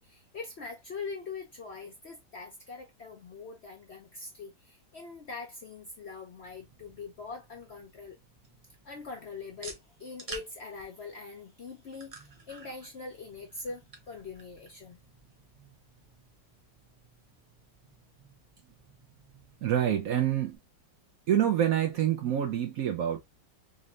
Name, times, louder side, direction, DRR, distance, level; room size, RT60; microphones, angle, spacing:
voice 1, 0.0-8.2 8.8-15.0, left 4 dB, 55° left, 0.7 m, -43 dB
sound 1, 6.3-20.6, right 3 dB, 50° right, 0.4 m, -52 dB
voice 2, 19.6-20.6 21.3-23.2, right 10 dB, 70° right, 0.9 m, -26 dB
4.0 x 3.1 x 2.5 m
omnidirectional pair, 1.9 m